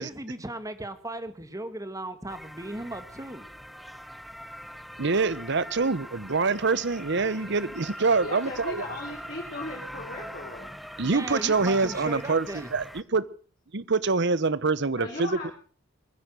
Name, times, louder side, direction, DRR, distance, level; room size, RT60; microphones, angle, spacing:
voice 1, 0.0-3.5 11.1-12.7, right 1 dB, 15° right, 11 dB, 1.7 m, -37 dB
sound 1, 2.3-13.0, equal, ahead, 0.8 m, -42 dB
voice 2, 5.0-8.8 11.0-13.2 13.7-15.5, right 4 dB, 60° right, 18 dB, 0.9 m, -25 dB
voice 3, 8.2-10.7 15.0-15.5, left 2 dB, 50° left, -2 dB, 3.9 m, -37 dB
22.0 x 10.0 x 6.3 m, 0.43 s
head